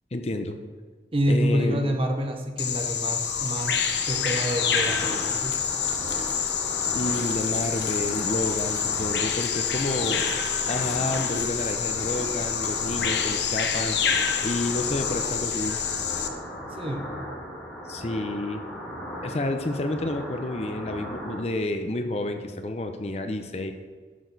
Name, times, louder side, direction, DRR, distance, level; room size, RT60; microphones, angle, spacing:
voice 1, 0.1-0.6 1.3-1.9 6.9-10.2 10.7-14.0 14.4-15.8 17.9-18.6 19.2-23.7, left 2 dB, 35° left, 7 dB, 0.6 m, -30 dB
voice 2, 1.1-5.6 16.7-17.1, equal, 30° right, 5 dB, 0.8 m, -27 dB
Bird vocalization bird call bird song, 2.6-16.3, left 7 dB, 80° left, 0.8 m, -27 dB
sound 1, 2.8-21.4, equal, 5° left, 2.3 m, -37 dB
11.0 x 6.2 x 4.0 m, 1.5 s
head